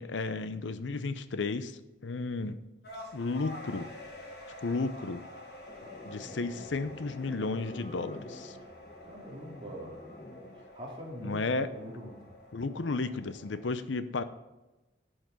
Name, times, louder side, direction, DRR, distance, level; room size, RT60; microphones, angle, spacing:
voice 1, 0.0-2.6 3.1-3.9 4.6-5.2 6.1-8.6 11.2-11.7 12.5-14.2, left 3 dB, 85° left, 12 dB, 0.7 m, -33 dB
sound 1, 2.8-13.6, left 1 dB, 60° left, 2.8 m, -49 dB
sound 2, 5.7-10.7, left 1 dB, 25° left, 0.8 m, -48 dB
voice 2, 9.0-10.1 10.5-12.2, equal, 30° right, -2 dB, 2.6 m, -43 dB
11.0 x 6.4 x 5.2 m, 1.1 s
head